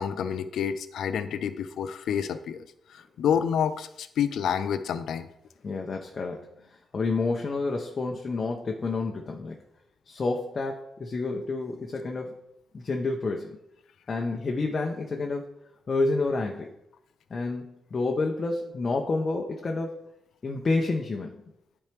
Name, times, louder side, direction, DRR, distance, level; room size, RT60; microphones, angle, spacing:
voice 1, 0.0-2.6 2.9-5.3, left 8 dB, 85° left, 12 dB, 0.5 m, -28 dB
voice 2, 5.6-9.6 10.1-12.4 12.7-13.6 14.1-15.5 15.9-16.7 17.3-20.0 20.4-21.4, left 3 dB, 40° left, 1 dB, 0.7 m, -29 dB
10.5 x 4.4 x 3.4 m, 0.81 s
cardioid pair, 115°, 0 cm